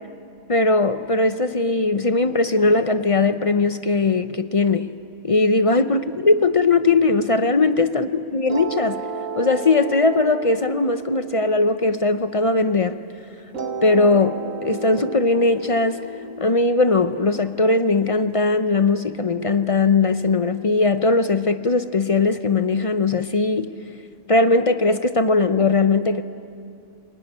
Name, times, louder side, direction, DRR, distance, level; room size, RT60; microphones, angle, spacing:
voice 1, 0.5-4.9 5.2-9.0 9.4-13.0 13.8-16.1 16.4-23.7 24.3-26.2, left 3 dB, 40° left, 10 dB, 0.5 m, -19 dB
sound 1, 8.5-12.9 13.5-18.5, right 4 dB, 70° right, 1.7 m, -34 dB
24.5 x 19.0 x 10.0 m, 2.4 s
omnidirectional pair, 1.4 m